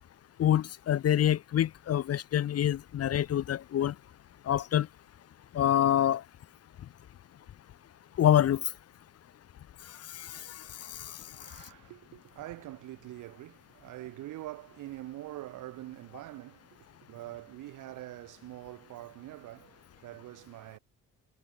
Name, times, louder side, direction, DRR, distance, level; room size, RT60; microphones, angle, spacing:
voice 1, 0.4-3.9 4.5-4.9 5.5-6.2 8.2-8.6 10.1-10.3, left 11 dB, 55° left, 0.8 m, -26 dB
voice 2, 11.4-20.8, right 16 dB, 90° right, 4.5 m, -44 dB
cardioid pair, 90°, 30 cm